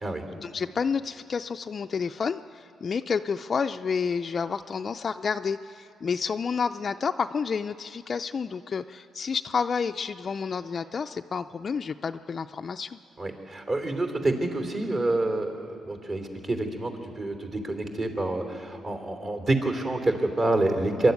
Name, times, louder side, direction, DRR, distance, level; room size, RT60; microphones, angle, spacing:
voice 1, 0.3-13.0, left 5 dB, 45° left, 7 dB, 0.4 m, -30 dB
voice 2, 13.2-21.1, right 2 dB, 40° right, 5 dB, 3.1 m, -27 dB
25.0 x 12.0 x 9.4 m, 2.7 s
cardioid pair, 90°, 0 cm